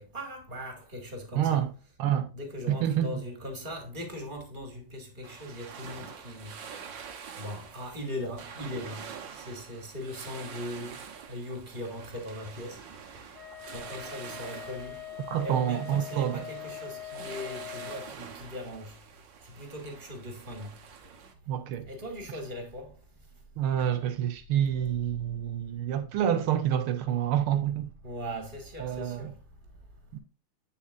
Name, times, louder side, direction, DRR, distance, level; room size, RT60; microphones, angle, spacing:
voice 1, 0.0-1.7 2.3-6.5 7.4-9.1 9.3-11.0 11.3-12.8 13.1-13.2 13.7-15.0 15.4-19.0 19.6-20.7 21.9-22.9 23.8-23.9 27.7-27.8 28.0-29.3, left 1 dB, 25° right, 2.4 m, -39 dB
voice 2, 1.3-1.7 2.0-2.3 2.7-3.2 15.3-16.4 21.5-21.9 23.6-27.9 28.8-29.3 30.1-30.2, right 10 dB, 90° right, 1.7 m, -28 dB
sound 1, 5.2-21.3, right 6 dB, 60° right, 1.8 m, -46 dB
Wind instrument woodwind instrument, 13.3-18.2, left 11 dB, 30° left, 2.9 m, -42 dB
8.6 x 7.1 x 2.5 m
omnidirectional pair, 2.4 m